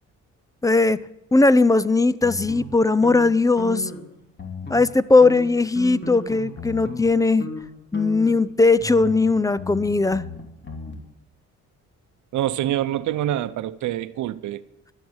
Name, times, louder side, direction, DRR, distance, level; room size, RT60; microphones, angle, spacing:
voice 1, 0.6-1.0 1.3-3.9 4.7-7.5 7.9-10.2, left 3 dB, 10° left, 0.5 m, -18 dB
sound 1, 2.2-4.1 4.3-5.0 5.2-7.1 7.4-7.6 7.9-10.9, left 2 dB, 35° left, 3.1 m, -36 dB
voice 2, 12.3-14.6, right 12 dB, 80° right, 0.8 m, -26 dB
12.5 x 9.4 x 8.9 m
cardioid pair, 90°, 30 cm